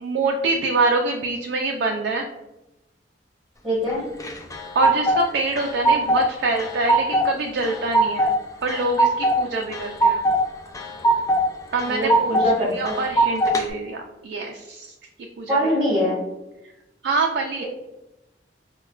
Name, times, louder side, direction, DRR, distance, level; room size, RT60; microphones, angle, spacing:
voice 1, 0.0-2.3 4.7-8.3 8.6-10.2 11.7-14.9 15.4-15.7 17.0-17.6, right 3 dB, 70° right, 1 dB, 0.3 m, -25 dB
voice 2, 3.6-4.0 11.9-12.9 15.5-16.2, equal, 5° right, -7 dB, 1.3 m, -23 dB
sound 1, 4.2-5.2 5.6-6.3 6.6-7.3 7.6-8.3 8.7-9.4 9.7-10.4 10.7-11.4 11.8-12.5 12.9-13.6, right 2 dB, 20° left, 0.3 m, -19 dB
4.6 x 2.1 x 2.3 m, 0.93 s
head